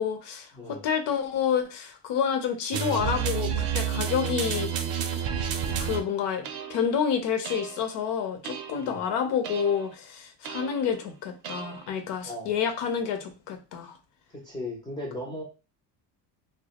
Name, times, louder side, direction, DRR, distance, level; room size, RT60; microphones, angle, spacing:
voice 1, 0.0-4.9 5.8-14.0, left 7 dB, 65° left, 0.6 m, -29 dB
voice 2, 0.5-0.8 8.8-9.0 12.2-12.5 14.3-15.4, left 1 dB, 10° left, 0.3 m, -37 dB
sound 1, 2.7-6.0 6.4-6.8 7.4-7.9 8.4-8.9 9.4-9.9 10.4-10.9 11.4-11.9, right 8 dB, 55° right, 0.5 m, -30 dB
2.2 x 2.1 x 2.8 m
cardioid pair, 150°, 46 cm